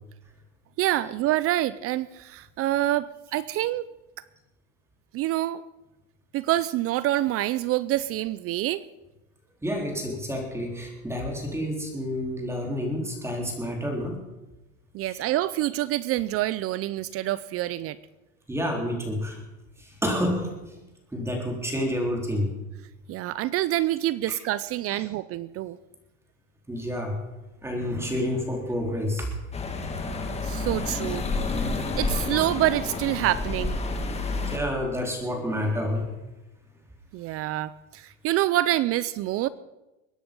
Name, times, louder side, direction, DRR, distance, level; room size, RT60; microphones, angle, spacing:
voice 1, 0.8-3.9 5.1-5.6 6.3-8.8 14.9-18.0 23.1-25.8 30.4-33.8 37.1-39.5, right 15 dB, 40° right, 18 dB, 0.5 m, -27 dB
voice 2, 9.6-14.2 15.0-15.2 18.5-19.4 19.8-20.5 21.1-22.5 24.3-24.4 24.9-25.0 26.7-27.2 27.6-29.4 31.1-31.2 34.5-36.1, equal, 5° right, 1 dB, 3.8 m, -29 dB
sound 1, 29.5-34.6, left 3 dB, 15° left, 1.9 m, -29 dB
22.0 x 10.0 x 5.4 m, 1.0 s
supercardioid pair, 130°, 35 cm